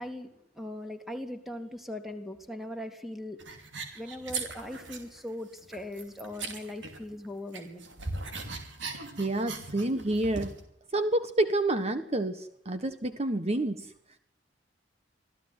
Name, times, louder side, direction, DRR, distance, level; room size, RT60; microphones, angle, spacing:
voice 1, 0.0-3.4 3.9-7.8, left 1 dB, ahead, 6 dB, 3.3 m, -40 dB
sound 1, 3.4-5.2 5.5-7.3 7.5-10.6, right 3 dB, 80° right, 5.5 m, -39 dB
voice 2, 8.8-10.5 10.9-13.9, right 1 dB, 35° right, 9 dB, 1.4 m, -29 dB
26.5 x 16.5 x 9.7 m, 0.70 s
head